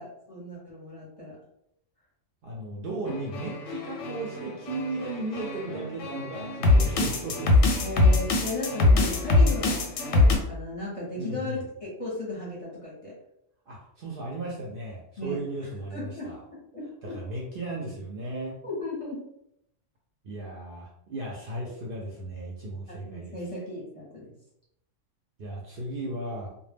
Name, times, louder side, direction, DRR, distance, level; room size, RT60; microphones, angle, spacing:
voice 1, 0.0-1.4 7.8-13.1 15.2-17.2 18.6-19.2 23.0-24.3, left 1 dB, 35° left, -5 dB, 0.7 m, -36 dB
voice 2, 2.4-7.6 11.2-11.6 13.7-16.4 17.0-18.5 20.2-23.4 25.4-26.5, right 2 dB, 60° right, -3 dB, 0.6 m, -35 dB
sound 1, 3.1-10.3, left 2 dB, 90° left, 0.9 m, -23 dB
2.1 x 2.1 x 3.3 m, 0.78 s
omnidirectional pair, 1.3 m